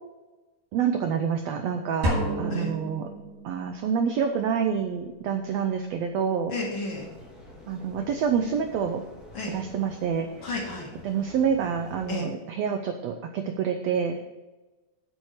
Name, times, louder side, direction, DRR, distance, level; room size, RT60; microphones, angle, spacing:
voice 1, 0.7-3.1 3.4-6.5 7.7-9.0 9.5-10.3 11.0-14.2, right 7 dB, 85° right, 6 dB, 1.4 m, -27 dB
sound 1, 2.0-3.8, right 1 dB, 65° right, 3.8 m, -29 dB
voice 2, 6.5-7.1 9.3-9.5 10.4-10.9 12.1-12.3, left 2 dB, 45° left, -2 dB, 1.9 m, -32 dB
sound 2, 6.9-12.1, left 1 dB, ahead, 1.7 m, -47 dB
8.4 x 6.5 x 6.5 m, 1.1 s
omnidirectional pair, 3.7 m